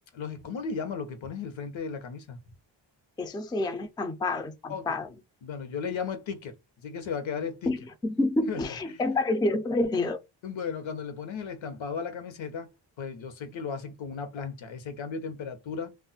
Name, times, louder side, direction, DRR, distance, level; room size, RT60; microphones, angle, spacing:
voice 1, 0.1-2.4 4.7-5.0 5.4-7.8 8.5-9.0 10.4-15.9, left 5 dB, 75° left, 1.0 m, -35 dB
voice 2, 3.2-5.1 7.7-10.2, left 2 dB, 10° left, 0.3 m, -28 dB
2.5 x 2.1 x 3.9 m
wide cardioid pair, 125°, 46 cm